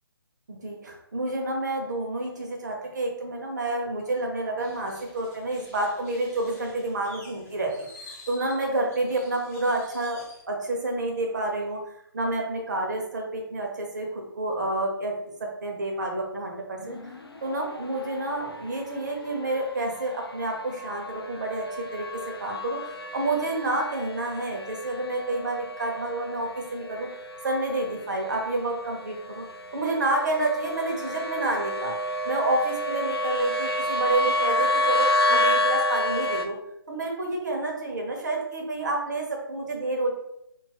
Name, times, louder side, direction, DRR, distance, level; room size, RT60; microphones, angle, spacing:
voice 1, 0.5-10.2 10.5-17.0 17.4-27.1 27.4-29.5 29.7-31.9 32.2-36.6 36.9-40.1, right 2 dB, 50° right, 1 dB, 0.5 m, -29 dB
sound 1, 4.6-10.4, left 2 dB, 35° left, 0.8 m, -50 dB
sound 2, 16.8-36.5, left 1 dB, 80° left, 0.4 m, -30 dB
2.7 x 2.3 x 2.8 m, 0.81 s
figure-of-eight pair, 140°, 13 cm